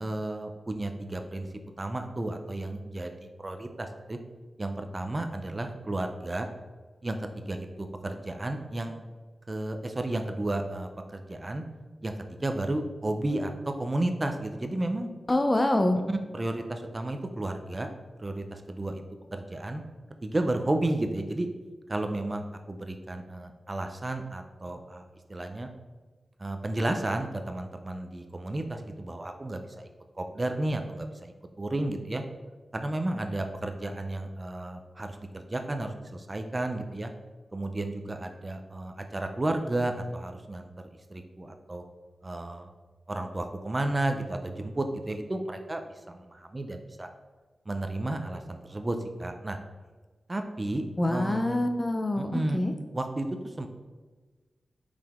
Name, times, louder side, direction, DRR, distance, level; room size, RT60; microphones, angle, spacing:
voice 1, 0.0-1.5 1.8-4.2 4.6-6.5 7.0-9.0 9.5-11.6 12.0-15.1 16.1-17.9 18.2-19.0 19.3-19.8 20.2-21.5 21.9-25.0 25.3-25.7 26.4-29.9 30.2-32.2 32.7-37.1 37.5-40.7 41.1-41.8 42.2-42.7 43.1-47.1 47.7-49.6 50.3-51.5 52.2-52.6 52.9-53.7, right 1 dB, 30° right, 6 dB, 0.5 m, -32 dB
voice 2, 15.3-16.0 51.0-52.7, left 1 dB, 25° left, 5 dB, 0.6 m, -25 dB
5.5 x 4.9 x 3.6 m, 1.3 s
cardioid pair, 70°, 0 cm